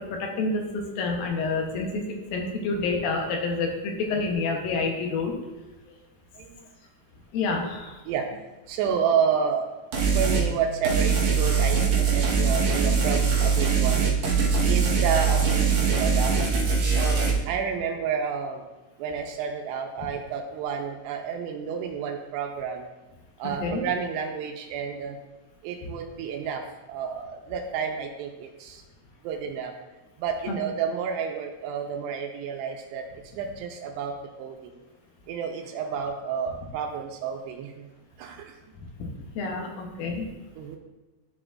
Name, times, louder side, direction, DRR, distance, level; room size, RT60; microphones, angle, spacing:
voice 1, 0.0-5.3 7.3-8.0 23.4-23.8 30.5-30.6 39.0-39.1 39.4-40.3, left 3 dB, 75° left, 1 dB, 2.4 m, -28 dB
voice 2, 8.7-9.7 10.1-16.3 17.0-18.7 19.0-22.9 23.4-25.2 25.6-28.8 29.2-29.7 30.2-33.0 33.4-34.8 35.3-37.9 38.2-38.6 40.6-40.8, right 7 dB, 85° right, 3 dB, 2.7 m, -30 dB
sound 1, 9.9-10.5 10.8-17.3, right 5 dB, 65° right, 1.8 m, -22 dB
12.0 x 5.0 x 2.4 m, 1.1 s
omnidirectional pair, 4.8 m